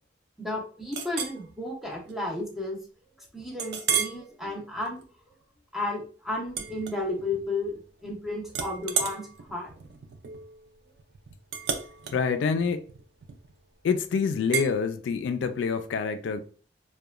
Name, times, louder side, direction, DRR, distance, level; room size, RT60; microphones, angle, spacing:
voice 1, 0.4-2.8 3.3-5.0 5.7-9.7, left 2 dB, ahead, 0.6 m, -33 dB
Chink clink, 0.9-1.4 1.9-2.1 2.6-2.7 3.6-4.2 4.8-5.0 6.5-7.5 7.8-8.2 8.5-13.6 14.5-14.7, right 7 dB, 60° right, 0.3 m, -33 dB
voice 2, 12.1-12.9 13.8-16.4, left 5 dB, 80° left, 0.3 m, -26 dB
2.9 x 2.1 x 2.3 m
head